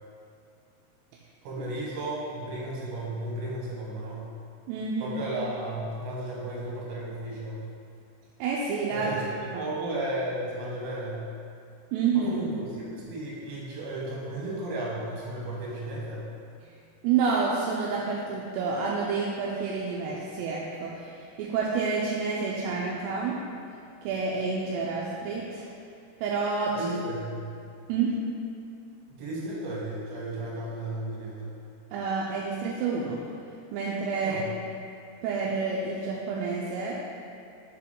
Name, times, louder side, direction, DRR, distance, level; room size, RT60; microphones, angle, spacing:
voice 1, 1.4-4.3 5.0-7.7 8.9-11.3 12.1-16.3 26.7-27.5 29.1-31.6 34.2-34.5, right 1 dB, 70° right, -5 dB, 2.9 m, -34 dB
voice 2, 4.7-5.2 8.4-9.1 11.9-12.3 17.0-23.4 24.0-25.7 26.2-26.8 27.9-28.2 31.9-33.2 33.7-34.4 35.2-37.0, right 5 dB, 85° right, -4 dB, 2.7 m, -29 dB
6.7 x 4.5 x 3.7 m, 2.5 s
omnidirectional pair, 5.0 m